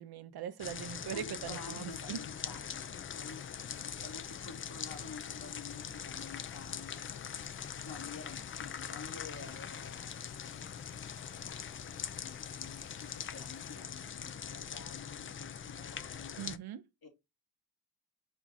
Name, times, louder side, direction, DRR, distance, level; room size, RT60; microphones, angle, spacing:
voice 1, 0.0-2.2 16.4-16.8, right 9 dB, 65° right, 0.7 m, -41 dB
sound 1, 0.6-16.6, left 8 dB, 30° left, 0.4 m, -42 dB
voice 2, 0.8-2.9 3.2-7.1 7.4-16.4 17.0-17.1, left 4 dB, 60° left, 2.7 m, -50 dB
Stream, 3.1-13.8, left 13 dB, 85° left, 0.5 m, -57 dB
4.5 x 2.4 x 3.8 m
supercardioid pair, 65°, 41 cm